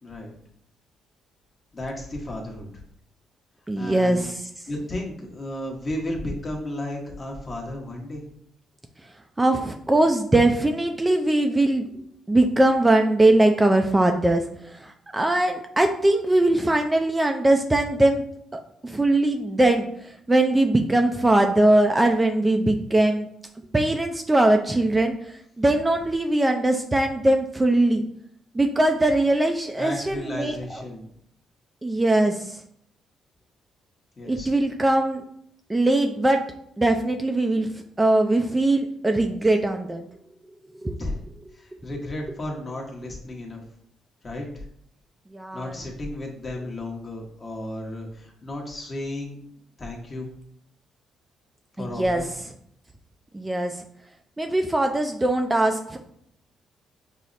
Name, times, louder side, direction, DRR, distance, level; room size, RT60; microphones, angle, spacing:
voice 1, 0.0-0.3 1.7-2.8 3.8-4.3 4.7-8.2 29.8-31.1 34.2-34.5 41.0-41.2 41.5-43.6 44.2-44.7 45.5-49.4 49.8-50.3 51.8-52.3, left 1 dB, 35° left, -1 dB, 1.0 m, -33 dB
voice 2, 3.7-4.3 9.4-11.8 12.3-14.4 14.8-18.2 18.5-19.9 20.3-23.3 23.7-25.1 25.6-28.0 28.5-30.6 31.8-32.6 34.2-35.2 35.7-36.4 36.8-37.7 38.0-40.0 40.8-41.0 45.3-45.7 51.8-52.2 53.3-53.7 54.4-56.0, right 1 dB, 15° right, 4 dB, 0.3 m, -21 dB
5.5 x 2.0 x 2.5 m, 0.68 s
cardioid pair, 90°, 0 cm